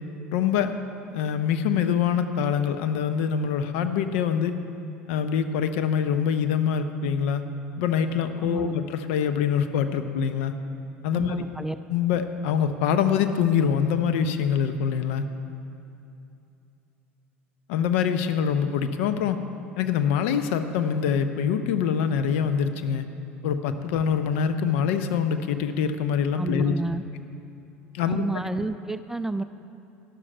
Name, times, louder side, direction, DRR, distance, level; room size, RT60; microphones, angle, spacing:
voice 1, 0.3-0.7 1.1-4.5 5.1-7.4 7.8-10.5 11.0-11.4 11.9-15.3 17.7-19.4 19.8-23.0 23.4-26.7 27.9-28.2, left 7 dB, 60° left, 9 dB, 0.7 m, -24 dB
voice 2, 8.4-8.7 11.1-11.8 26.3-27.0 28.1-29.4, right 2 dB, 5° right, 11 dB, 0.4 m, -30 dB
12.0 x 11.5 x 4.5 m, 2.7 s
figure-of-eight pair, 70°, 7 cm